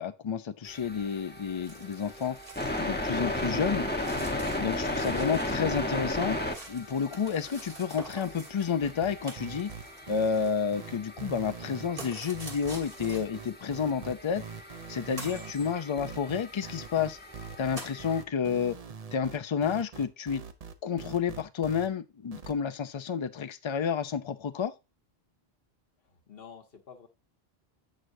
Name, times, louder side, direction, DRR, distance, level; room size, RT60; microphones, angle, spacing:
voice 1, 0.0-2.4 2.8-3.9 4.6-6.4 6.7-9.7 10.1-14.4 14.9-17.2 17.6-18.8 19.1-20.4 20.8-24.7, left 6 dB, 40° left, 0.4 m, -30 dB
sound 1, 0.7-18.2, left 1 dB, 10° left, 0.9 m, -36 dB
sound 2, 1.6-2.9 3.1-3.2 4.0-5.8 6.1-8.7 9.2-11.0 12.0-13.5 14.3-14.4 15.2-15.7 16.4-16.5 16.9-17.0 17.8-18.0, right 2 dB, 60° right, 1.9 m, -46 dB
voice 2, 4.0-4.5 15.9-16.1 26.0-27.1, left 6 dB, 70° left, 1.2 m, -48 dB
sound 3, 8.8-21.9 22.3-22.5, right 6 dB, 45° right, 0.7 m, -43 dB
7.7 x 6.4 x 2.6 m
omnidirectional pair, 1.0 m